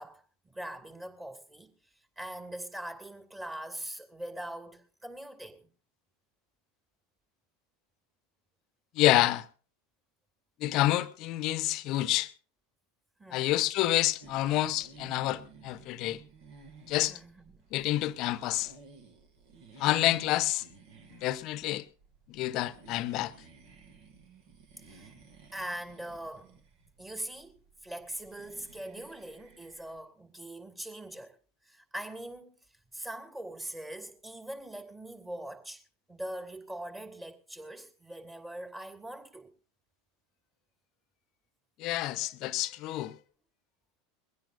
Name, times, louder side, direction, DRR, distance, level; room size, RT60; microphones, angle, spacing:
voice 1, 0.0-1.7 2.2-5.7 13.2-13.6 17.1-17.5 19.8-20.1 24.5-26.6 26.8-27.5 27.8-31.4 31.6-32.6 32.9-35.8 36.1-39.5, right 1 dB, 15° right, 2.6 m, -42 dB
voice 2, 8.9-9.4 10.6-12.3 13.3-16.2 16.9-17.2 17.7-18.7 19.8-20.6 21.1-21.8 22.3-23.3 41.8-43.2, left 16 dB, 50° left, 0.9 m, -28 dB
sound 1, 14.2-30.0, right 4 dB, 60° right, 2.2 m, -55 dB
21.5 x 16.5 x 2.6 m
figure-of-eight pair, 80°, 0 cm